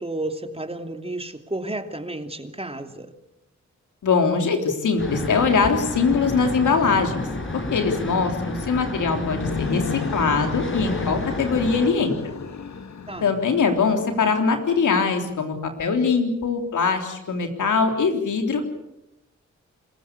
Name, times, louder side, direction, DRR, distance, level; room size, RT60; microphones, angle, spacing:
voice 1, 0.0-3.1 13.1-13.3, right 2 dB, 20° right, 6 dB, 2.9 m, -32 dB
voice 2, 4.0-7.2 7.5-9.8 10.1-12.1 13.2-18.6, left 5 dB, 85° left, 5 dB, 3.6 m, -22 dB
sound 1, 5.0-11.9, left 2 dB, 40° left, 6.3 m, -30 dB
sound 2, 9.2-14.3, left 5 dB, 65° left, 2.1 m, -34 dB
26.5 x 15.5 x 8.5 m, 0.88 s
cardioid pair, 50°, 30 cm